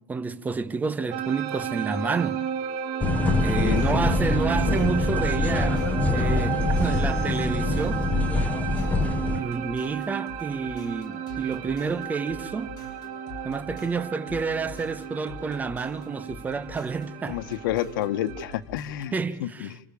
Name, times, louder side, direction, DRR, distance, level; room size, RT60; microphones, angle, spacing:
voice 1, 0.0-2.4 3.4-5.8 6.1-8.1 9.3-12.8 13.4-17.4 19.1-19.7, right 4 dB, 15° right, 1.2 m, -29 dB
sound 1, 1.1-18.6, right 10 dB, 50° right, 6.5 m, -33 dB
sound 2, 3.0-9.4, left 3 dB, 15° left, 1.2 m, -24 dB
sound 3, 3.3-19.3, left 2 dB, 40° left, 6.6 m, -44 dB
voice 2, 3.5-3.8 17.3-19.1 19.4-19.8, left 12 dB, 90° left, 1.5 m, -29 dB
29.5 x 28.5 x 7.1 m
supercardioid pair, 155°, 11 cm